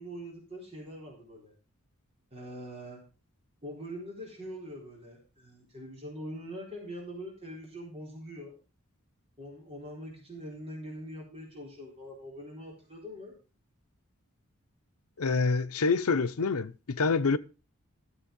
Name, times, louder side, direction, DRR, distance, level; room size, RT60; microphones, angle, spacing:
voice 1, 0.0-1.5 2.3-3.0 3.6-8.6 9.4-13.4, equal, 25° right, 4.2 m, -43 dB
voice 2, 15.2-17.4, left 4 dB, 90° left, 0.7 m, -26 dB
13.0 x 7.5 x 5.3 m
head